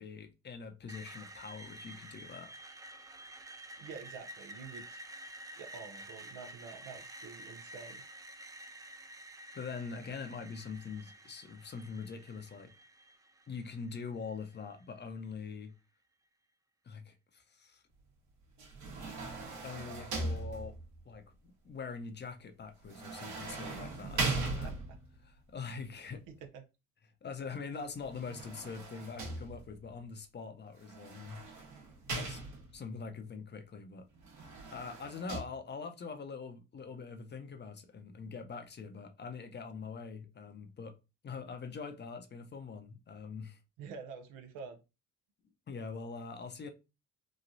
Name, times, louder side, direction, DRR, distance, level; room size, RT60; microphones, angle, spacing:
voice 1, 0.0-2.5 9.5-12.7 13.5-15.7 16.8-17.8 19.6-20.7 21.1-24.7 25.2-26.2 27.2-31.4 32.1-32.4 32.7-34.1 34.7-41.0 41.2-43.6 45.7-46.7, left 5 dB, 35° left, 0.6 m, -43 dB
Screech, 0.9-14.8, right 1 dB, 10° right, 0.3 m, -50 dB
voice 2, 3.8-5.0 5.6-8.0 24.4-24.7 25.9-26.6 43.8-44.8, right 5 dB, 85° right, 0.7 m, -48 dB
sound 1, 18.6-21.0 22.9-25.2 28.0-29.9 30.9-32.9 34.2-35.4, right 3 dB, 65° right, 1.2 m, -39 dB
3.0 x 2.3 x 2.6 m
supercardioid pair, 65°, 31 cm